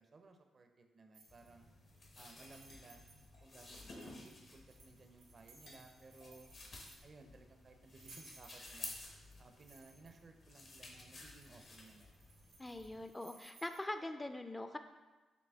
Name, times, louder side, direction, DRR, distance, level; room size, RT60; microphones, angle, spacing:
voice 1, 0.0-1.7 2.2-3.0 3.4-6.5 7.0-8.9 9.4-12.2, right 3 dB, 50° right, 5 dB, 0.5 m, -60 dB
sound 1, 1.1-1.6 1.9-7.2 7.8-9.0 9.5-10.2 11.1-13.8, right 3 dB, 90° right, 0.8 m, -63 dB
sound 2, 1.3-13.1, left 2 dB, 60° left, 0.8 m, -54 dB
sound 3, 2.2-7.5, left 1 dB, 85° left, 1.0 m, -69 dB
voice 2, 12.6-14.8, left 1 dB, 20° left, 7 dB, 0.3 m, -43 dB
5.9 x 2.1 x 3.4 m, 1.2 s
supercardioid pair, 50°, 0 cm